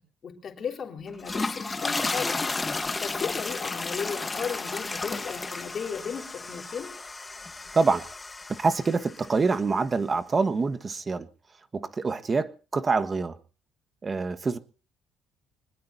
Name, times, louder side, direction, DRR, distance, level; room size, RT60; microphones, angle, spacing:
voice 1, 0.2-2.5 3.0-7.0, left 6 dB, 40° left, 3.6 m, -35 dB
sound 1, 1.1-9.4, left 3 dB, 15° left, 1.1 m, -33 dB
voice 2, 7.7-8.1 8.6-11.3 11.7-13.4 14.0-14.6, right 4 dB, 25° right, 1.2 m, -25 dB
24.5 x 20.0 x 2.7 m
cardioid pair, 140°, 0 cm